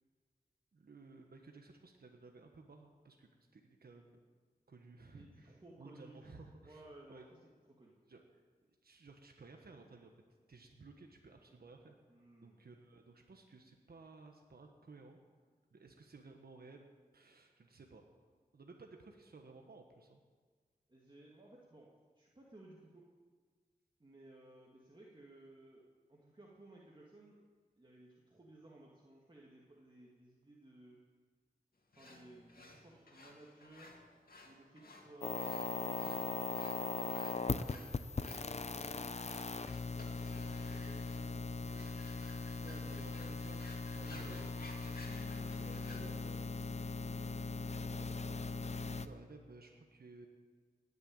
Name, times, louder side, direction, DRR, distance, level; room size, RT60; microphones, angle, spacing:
voice 1, 0.7-4.2 4.7-6.8 7.1-7.3 8.1-8.4 8.8-10.1 10.5-11.9 12.4-15.2 15.7-16.9 17.1-18.1 18.5-20.2 42.5-45.3 45.6-46.3 48.5-50.3, right 3 dB, 85° right, 3 dB, 1.3 m, -57 dB
voice 2, 5.1-7.4 7.7-8.0 12.1-12.6 20.9-21.9 22.2-23.0 24.0-27.4 27.8-31.0 32.0-34.0 34.4-41.8 42.8-43.4 44.0-44.5 45.1-46.4 46.9-47.4, right 1 dB, 30° right, -4 dB, 2.2 m, -59 dB
sound 1, 31.9-46.2, left 2 dB, 75° left, 2.4 m, -57 dB
sound 2, 35.2-49.1, left 4 dB, 45° left, 0.6 m, -40 dB
19.0 x 6.8 x 8.8 m, 1.6 s
wide cardioid pair, 65°, 16 cm